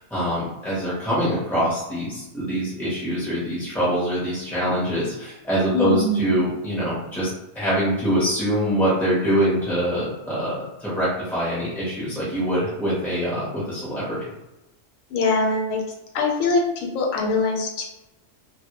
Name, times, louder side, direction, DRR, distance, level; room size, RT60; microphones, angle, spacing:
voice 1, 0.0-14.2, equal, ahead, -9 dB, 0.4 m, -24 dB
voice 2, 5.7-6.4 15.1-15.8 16.1-17.9, left 3 dB, 90° left, 0 dB, 1.0 m, -23 dB
2.1 x 2.0 x 2.9 m, 0.97 s
omnidirectional pair, 1.3 m